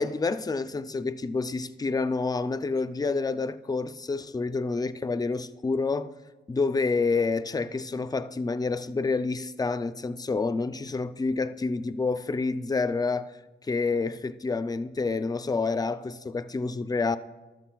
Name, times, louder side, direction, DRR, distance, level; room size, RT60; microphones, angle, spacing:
voice 1, 0.0-6.1 6.5-13.3 13.6-17.2, left 4 dB, 20° left, 0.4 m, -28 dB
14.0 x 12.0 x 2.3 m
wide cardioid pair, 100°, 20 cm